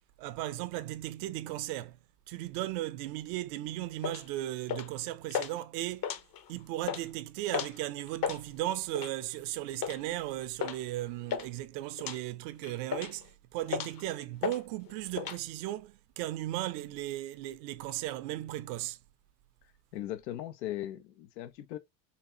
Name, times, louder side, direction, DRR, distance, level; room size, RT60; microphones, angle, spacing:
voice 1, 0.2-2.0 2.3-6.1 6.5-19.0, right 15 dB, 65° right, 0.7 m, -36 dB
sound 1, 4.0-4.2 4.7-5.0 5.3-5.5 5.9-6.5 6.8-7.0 7.5-7.8 8.1-8.4 9.0-9.2 9.8-10.0 10.6-10.8 11.0-11.5 12.0-12.2 12.6-13.2 13.7-14.0 14.4-14.6 14.9-15.4, left 8 dB, 45° left, 1.0 m, -34 dB
voice 2, 19.9-21.8, left 13 dB, 80° left, 0.9 m, -38 dB
4.2 x 2.8 x 2.8 m
hypercardioid pair, 75°, 50 cm